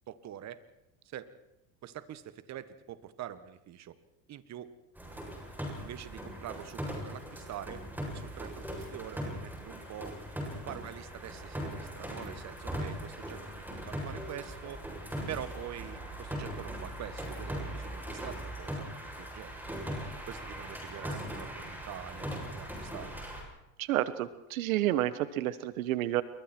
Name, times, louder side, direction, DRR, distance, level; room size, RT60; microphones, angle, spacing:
voice 1, 0.1-0.6 1.0-1.3 1.8-3.9 4.3-4.7 5.8-7.8 8.1-10.2 10.6-14.8 15.3-18.9 19.2-19.7 20.3-23.1, right 11 dB, 40° right, 13 dB, 1.6 m, -45 dB
sound 1, 5.0-23.4, equal, 5° right, 7.6 m, -40 dB
voice 2, 23.8-26.2, right 14 dB, 90° right, 15 dB, 1.2 m, -30 dB
28.0 x 23.0 x 4.5 m, 0.87 s
supercardioid pair, 110°, 41 cm